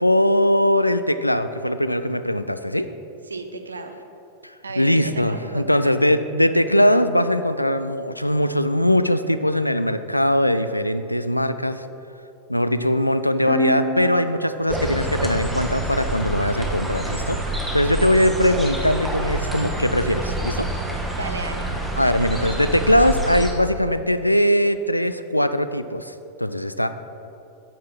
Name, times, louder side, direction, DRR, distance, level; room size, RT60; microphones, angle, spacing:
voice 1, 0.0-2.9 4.8-11.8 12.5-20.7 22.0-26.1 26.4-26.9, left 1 dB, 90° left, 11 dB, 0.3 m, -20 dB
voice 2, 3.3-3.9 4.6-5.9 21.2-21.7, right 3 dB, 75° right, 6 dB, 0.6 m, -34 dB
sound 1, 13.5-17.2, right 2 dB, 15° left, 1.0 m, -32 dB
sound 2, 14.7-23.5, right 1 dB, 5° right, 1.1 m, -27 dB
9.1 x 4.6 x 5.9 m, 2.8 s
figure-of-eight pair, 90°, 0 cm